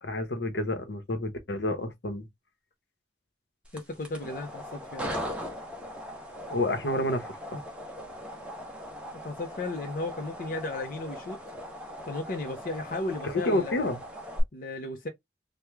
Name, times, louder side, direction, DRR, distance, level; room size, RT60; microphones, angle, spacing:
voice 1, 0.0-2.3 6.5-7.6 13.2-14.0, left 1 dB, 80° left, 0.8 m, -29 dB
sound 1, 3.6-14.4, equal, 5° right, 0.8 m, -39 dB
voice 2, 3.7-5.1 9.2-11.4 12.0-14.0 14.5-15.1, left 2 dB, 50° left, 0.6 m, -35 dB
3.1 x 2.2 x 3.4 m
head